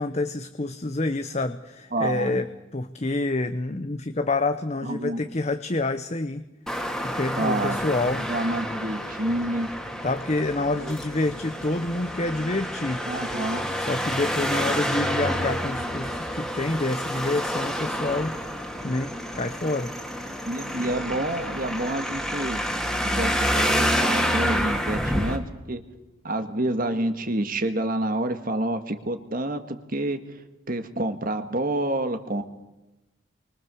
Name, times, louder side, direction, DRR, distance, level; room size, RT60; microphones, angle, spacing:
voice 1, 0.0-6.5 7.0-8.3 10.0-13.1 13.8-18.6 18.8-19.9, left 2 dB, 35° left, 9 dB, 0.8 m, -28 dB
voice 2, 1.9-2.4 4.8-5.2 7.4-7.8 8.1-9.7 10.8-10.9 13.1-13.7 20.3-22.6 23.0-25.8 26.2-30.4 30.7-32.4, right 1 dB, 45° right, 8 dB, 1.8 m, -28 dB
Traffic noise roadway noise, 6.7-25.4, equal, ahead, 2.6 m, -28 dB
29.5 x 24.5 x 7.0 m, 1.0 s
head